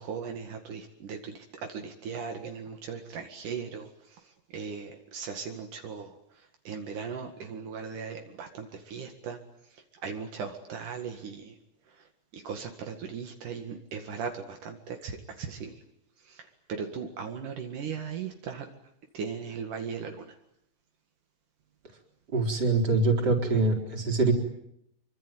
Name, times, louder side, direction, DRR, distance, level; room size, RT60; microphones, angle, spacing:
voice 1, 0.0-1.3 1.7-3.9 4.5-6.1 6.7-9.4 10.0-11.5 12.4-14.8 15.0-15.7 16.7-18.6 19.1-20.2, right 6 dB, 70° right, 4 dB, 3.5 m, -37 dB
voice 2, 22.3-24.3, right 3 dB, 30° right, 2 dB, 4.5 m, -24 dB
26.0 x 24.5 x 9.2 m, 0.77 s
omnidirectional pair, 3.8 m